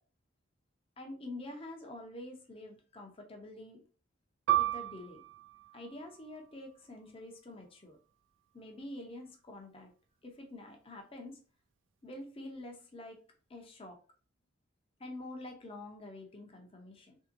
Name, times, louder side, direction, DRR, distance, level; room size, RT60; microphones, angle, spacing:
voice 1, 1.0-3.8 4.5-5.2 5.7-8.0 8.5-9.9 10.2-11.4 12.0-13.2 13.5-14.0 15.0-17.2, left 1 dB, 25° left, 3 dB, 0.6 m, -47 dB
Piano, 4.5-9.5 9.9-10.0 10.8-11.2, right 13 dB, 70° right, 0.4 m, -36 dB
3.4 x 2.7 x 2.5 m, 0.37 s
head